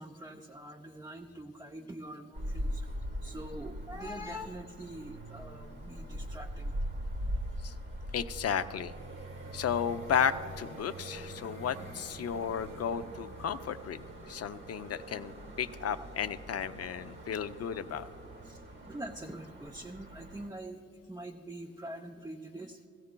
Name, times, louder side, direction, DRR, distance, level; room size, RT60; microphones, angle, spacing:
voice 1, 0.0-6.8 18.4-22.8, right 1 dB, 10° right, 0 dB, 0.5 m, -44 dB
sound 1, 2.3-20.5, equal, 40° right, 1.0 m, -42 dB
voice 2, 8.1-8.9 9.5-18.0, left 7 dB, 50° left, 11 dB, 0.5 m, -33 dB
17.0 x 15.0 x 2.2 m, 2.4 s
cardioid pair, 95°, 31 cm